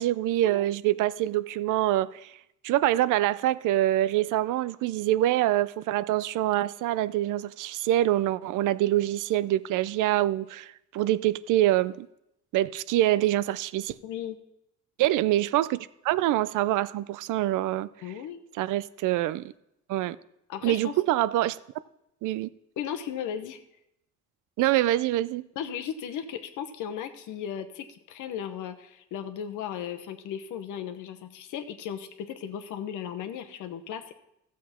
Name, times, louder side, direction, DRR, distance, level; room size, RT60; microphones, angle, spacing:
voice 1, 0.0-2.3 2.6-12.1 12.5-14.0 15.0-17.9 18.6-19.4 19.9-20.2 20.6-21.6 22.2-22.5 24.6-25.4, right 14 dB, 85° right, 0.5 m, -25 dB
voice 2, 14.0-14.4 18.0-18.4 20.5-21.0 22.8-23.6 25.5-34.2, left 9 dB, 85° left, 1.0 m, -36 dB
14.0 x 7.4 x 4.3 m
cardioid pair, 90°, 30 cm